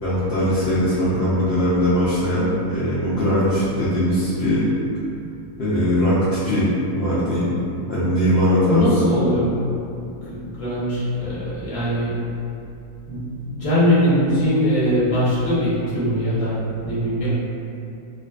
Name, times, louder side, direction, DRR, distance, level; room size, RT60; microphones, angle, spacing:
voice 1, 0.0-4.7 5.6-6.7 6.9-7.5 7.9-9.1, equal, 65° left, -11 dB, 0.6 m, -20 dB
voice 2, 8.7-9.6 10.2-12.2 13.1-16.6 16.8-17.3, equal, 30° left, -12 dB, 0.7 m, -21 dB
2.5 x 2.3 x 2.4 m, 2.7 s
omnidirectional pair, 1.6 m